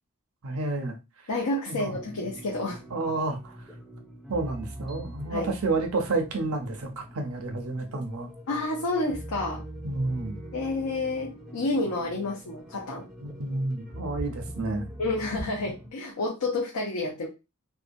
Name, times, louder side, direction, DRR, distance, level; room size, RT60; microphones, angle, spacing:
voice 1, 0.4-1.0 1.7-2.0 2.9-3.6 4.3-8.3 9.8-10.4 13.2-14.9, right 3 dB, 80° right, 3 dB, 0.7 m, -30 dB
voice 2, 1.3-2.8 5.3-5.5 8.5-9.6 10.5-13.1 15.0-17.3, left 2 dB, 85° left, -2 dB, 0.6 m, -29 dB
sound 1, 1.7-15.9, right 1 dB, ahead, 0.5 m, -43 dB
2.7 x 2.2 x 2.6 m, 0.27 s
head